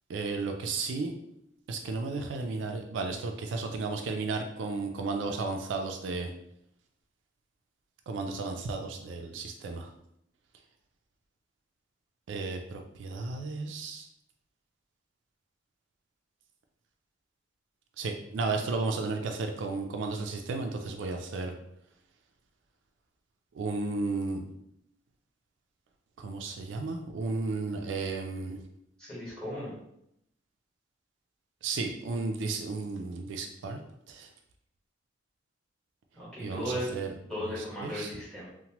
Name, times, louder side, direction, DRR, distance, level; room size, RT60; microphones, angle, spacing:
voice 1, 0.1-1.1 1.7-6.3 8.1-9.9 12.3-14.1 18.0-21.5 23.5-24.4 26.2-28.6 31.6-33.8 34.1-34.3 36.4-37.1 37.4-38.1, right 3 dB, 75° right, 4 dB, 0.3 m, -33 dB
voice 2, 29.0-29.7 36.1-36.9 37.3-38.5, equal, 5° left, -9 dB, 1.3 m, -36 dB
2.9 x 2.1 x 2.9 m, 0.78 s
head